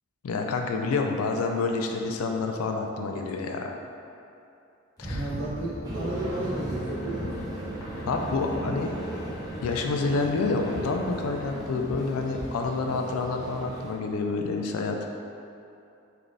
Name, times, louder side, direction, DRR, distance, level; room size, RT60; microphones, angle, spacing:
voice 1, 0.2-3.8 5.0-5.2 8.1-8.9 9.6-15.1, left 3 dB, 80° left, 3 dB, 0.4 m, -28 dB
sound 1, 5.0-12.4, equal, 15° left, 0.7 m, -39 dB
voice 2, 5.1-7.5 8.5-8.8, right 1 dB, 65° right, -8 dB, 1.0 m, -34 dB
sound 2, 5.8-13.9, right 1 dB, 15° right, 0.3 m, -37 dB
3.3 x 2.4 x 3.8 m, 2.7 s
head